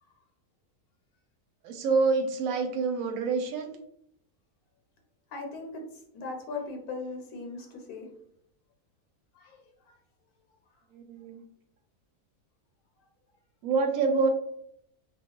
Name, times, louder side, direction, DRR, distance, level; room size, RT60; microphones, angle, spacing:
voice 1, 1.6-3.7 10.9-11.4 13.6-14.3, right 4 dB, 70° right, 4 dB, 0.9 m, -27 dB
voice 2, 5.3-5.8 6.1-8.1 9.4-10.0, left 3 dB, 80° left, 2 dB, 1.1 m, -39 dB
2.4 x 2.3 x 2.9 m, 0.69 s
omnidirectional pair, 1.6 m